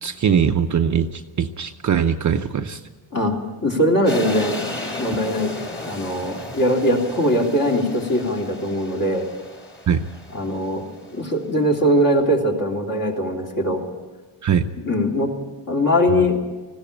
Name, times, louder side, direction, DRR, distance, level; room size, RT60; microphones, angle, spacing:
voice 1, 0.0-2.8 9.9-10.1 14.4-14.7 16.1-16.2, right 7 dB, 35° right, 5 dB, 0.7 m, -21 dB
voice 2, 3.6-4.6 5.0-5.5 5.8-9.3 10.3-10.8 11.1-13.8 14.8-15.3 15.7-16.4, equal, 40° left, 0 dB, 3.3 m, -21 dB
sound 1, 4.1-11.2, left 2 dB, 25° left, 3.0 m, -34 dB
19.5 x 16.0 x 8.6 m, 1.3 s
cardioid pair, 135°, 50 cm